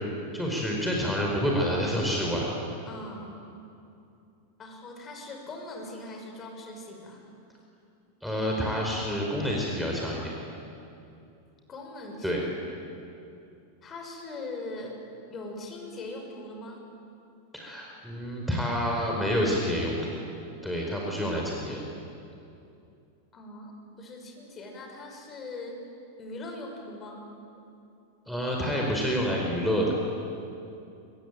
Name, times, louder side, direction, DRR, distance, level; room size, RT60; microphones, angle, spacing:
voice 1, 0.3-2.5 8.2-10.3 12.2-12.4 17.5-20.2 20.6-21.8 28.3-29.9, equal, ahead, -2 dB, 4.9 m, -28 dB
voice 2, 2.8-3.4 4.6-7.3 11.7-12.4 13.8-15.0 15.3-16.8 23.3-25.8 26.2-27.2, left 2 dB, 25° left, 2 dB, 6.3 m, -41 dB
25.5 x 24.0 x 9.1 m, 2.7 s
figure-of-eight pair, 90°, 0 cm